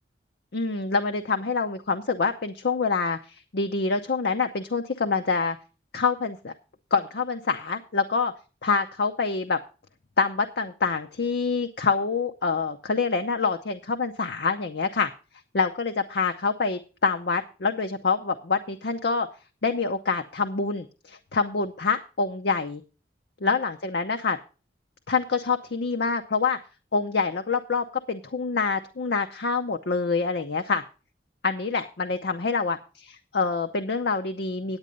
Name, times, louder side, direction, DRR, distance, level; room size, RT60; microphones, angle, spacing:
voice 1, 0.5-5.6 5.9-6.5 6.9-8.3 8.6-9.6 10.2-15.1 15.5-19.3 19.6-22.8 23.4-24.4 25.1-26.6 26.9-30.8 31.4-34.8, left 4 dB, 65° left, 6 dB, 0.7 m, -26 dB
9.7 x 8.6 x 5.2 m, 0.34 s
head